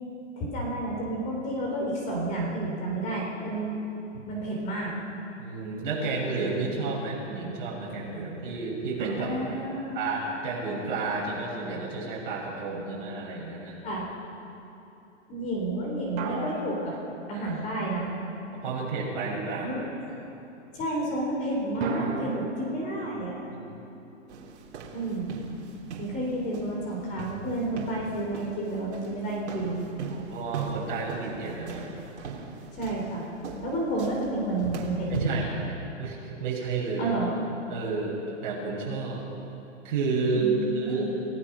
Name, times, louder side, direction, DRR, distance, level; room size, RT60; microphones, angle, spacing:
voice 1, 0.4-3.8 4.3-4.9 9.2-9.9 13.8-14.0 15.3-17.0 17.3-18.1 19.6-19.8 20.7-23.5 24.9-25.4 26.0-29.9 32.7-33.3 33.6-35.4 37.0-37.3 40.3-41.0, right 1 dB, 20° left, -2 dB, 3.7 m, -30 dB
voice 2, 5.4-9.3 9.9-13.8 18.5-19.7 23.6-23.8 30.1-32.0 35.1-35.5 36.0-37.1 37.7-39.2 39.8-41.0, right 4 dB, 45° right, -3 dB, 7.2 m, -31 dB
sound 1, 9.0-12.4 16.2-18.2 21.8-24.9, right 4 dB, 25° right, 2.7 m, -38 dB
sound 2, 24.3-35.5, right 5 dB, 60° right, 3.5 m, -39 dB
28.5 x 17.5 x 6.1 m, 2.9 s
hypercardioid pair, 165°, 37 cm